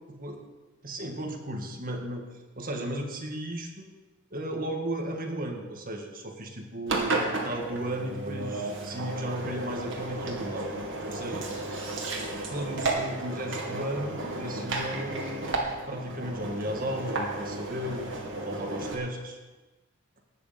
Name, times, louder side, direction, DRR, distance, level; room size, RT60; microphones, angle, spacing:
voice 1, 0.1-0.4 0.8-2.2 2.6-3.9 4.3-10.7 11.1-11.5 12.5-18.1 18.5-19.4, right 1 dB, 40° right, 3 dB, 1.9 m, -35 dB
Engine, 6.9-19.0, right 2 dB, 65° right, 2.4 m, -33 dB
19.5 x 6.7 x 7.0 m, 1.2 s
head